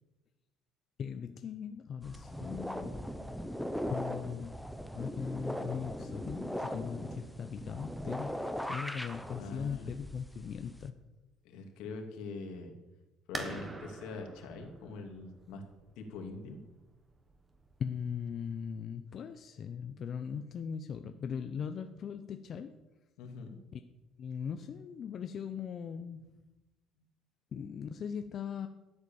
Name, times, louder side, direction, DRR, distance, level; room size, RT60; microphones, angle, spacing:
voice 1, 1.0-2.9 3.9-4.6 4.9-10.9 17.8-22.7 23.7-23.8 24.2-26.3 27.5-28.7, left 7 dB, 40° left, 7 dB, 0.7 m, -39 dB
sound 1, 2.0-10.9, equal, ahead, 0.8 m, -39 dB
voice 2, 9.4-9.9 11.4-12.7 13.3-15.6 16.0-16.6 23.2-23.6, left 3 dB, 75° left, 3 dB, 2.5 m, -43 dB
sound 2, 13.3-18.8, right 3 dB, 20° right, 1.3 m, -46 dB
13.5 x 8.0 x 7.1 m, 1.1 s
cardioid pair, 150°, 0 cm